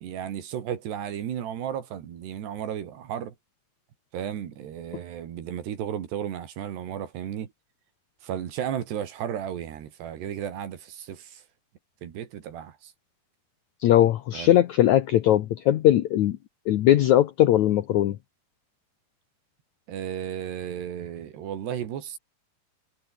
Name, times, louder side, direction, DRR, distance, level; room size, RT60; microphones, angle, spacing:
voice 1, 0.0-3.3 4.1-7.5 8.2-11.4 12.0-12.9 14.3-14.6 19.9-22.2, right 9 dB, 75° right, 4.5 m, -34 dB
voice 2, 13.8-16.4 16.7-18.2, left 12 dB, 80° left, 1.6 m, -20 dB
omnidirectional pair, 4.8 m